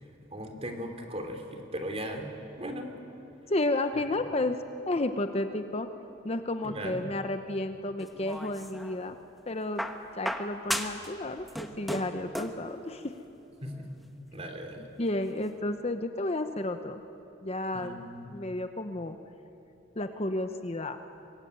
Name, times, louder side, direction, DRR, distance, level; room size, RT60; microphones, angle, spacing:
voice 1, 0.3-2.3 2.6-2.9 6.6-7.1 13.6-13.9 14.3-14.9 17.7-18.3, equal, 30° right, 5 dB, 3.0 m, -38 dB
voice 2, 3.5-4.6 4.9-5.9 6.2-9.2 9.5-9.9 10.2-11.4 11.8-13.1 15.0-17.0 17.4-18.0 18.3-19.2 20.0-21.0, left 2 dB, 30° left, 8 dB, 0.9 m, -31 dB
sound 1, 8.0-9.0 9.8-11.1 11.4-12.6 13.7-13.8, equal, ahead, 1.3 m, -35 dB
24.5 x 21.0 x 9.5 m, 2.9 s
head